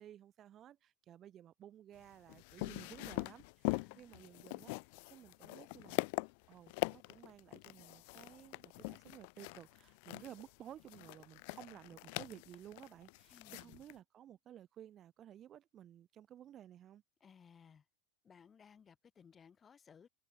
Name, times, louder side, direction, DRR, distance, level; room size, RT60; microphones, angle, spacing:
voice 1, 0.0-4.7 5.1-6.1 6.5-17.0, right 11 dB, 30° right, 3.1 m, -55 dB
sound 1, 2.0-13.9, left 31 dB, 60° left, 0.6 m, -42 dB
voice 2, 3.7-4.1 13.3-13.8 17.2-17.9 18.2-20.1, left 7 dB, 20° left, 2.0 m, -61 dB
supercardioid pair, 135°, 0 cm